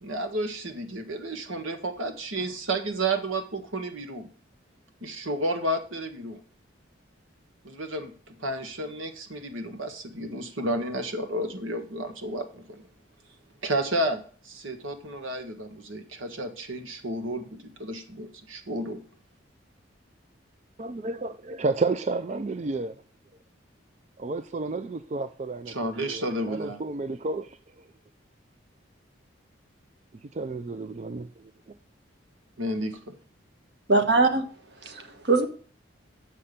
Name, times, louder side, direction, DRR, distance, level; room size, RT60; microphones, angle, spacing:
voice 1, 0.0-4.3 5.0-6.4 7.6-12.8 13.6-19.0 25.7-26.8 32.6-33.2, right 1 dB, 80° right, 1.6 m, -32 dB
voice 2, 20.8-23.0 24.2-27.6 30.3-31.3, right 3 dB, 35° right, 0.3 m, -31 dB
voice 3, 33.9-34.5 34.8-35.5, right 3 dB, 55° right, 1.3 m, -22 dB
7.6 x 5.8 x 6.7 m
head